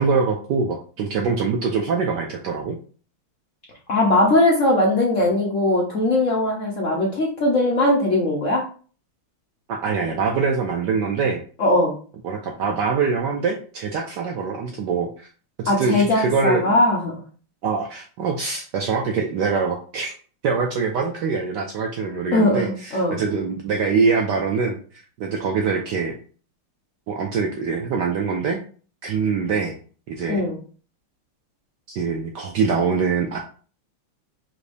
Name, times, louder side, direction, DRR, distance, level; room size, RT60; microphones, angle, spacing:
voice 1, 0.0-2.8 9.7-11.4 12.2-15.3 15.6-16.6 17.6-20.1 20.4-24.8 25.2-26.1 27.1-28.6 29.0-29.8 30.1-30.4 32.0-33.4, right 5 dB, 70° right, 1 dB, 1.0 m, -23 dB
voice 2, 3.9-8.6 11.6-12.0 15.7-17.2 22.3-23.2 30.3-30.6, left 1 dB, 55° left, -2 dB, 0.9 m, -20 dB
4.8 x 4.0 x 2.6 m, 0.41 s
omnidirectional pair, 2.4 m